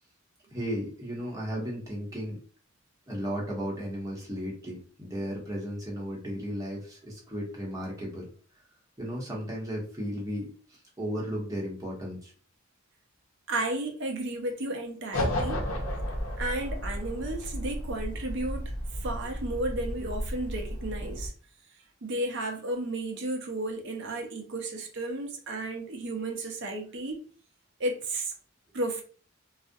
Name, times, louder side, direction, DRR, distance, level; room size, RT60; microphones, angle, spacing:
voice 1, 0.5-2.4 3.1-8.3 9.0-12.3, equal, 15° right, 0.8 m, -35 dB
voice 2, 13.5-15.6 16.4-21.3 22.0-27.2 27.8-28.3 28.7-29.0, right 2 dB, 55° right, 0.5 m, -33 dB
sound 1, 15.1-21.3, equal, 75° left, 0.6 m, -33 dB
2.4 x 2.0 x 2.6 m
head